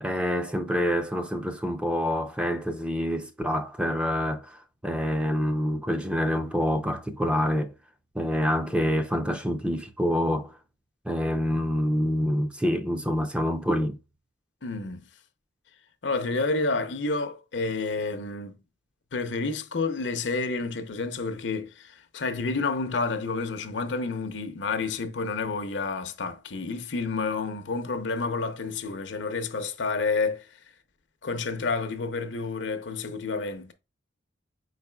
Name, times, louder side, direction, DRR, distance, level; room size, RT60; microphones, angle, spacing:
voice 1, 0.0-7.7 8.1-10.5 11.1-14.0, equal, 5° right, 0.5 m, -27 dB
voice 2, 14.6-15.1 16.0-18.6 19.1-30.5 31.2-33.7, left 3 dB, 70° left, 0.7 m, -29 dB
4.9 x 4.1 x 2.2 m
head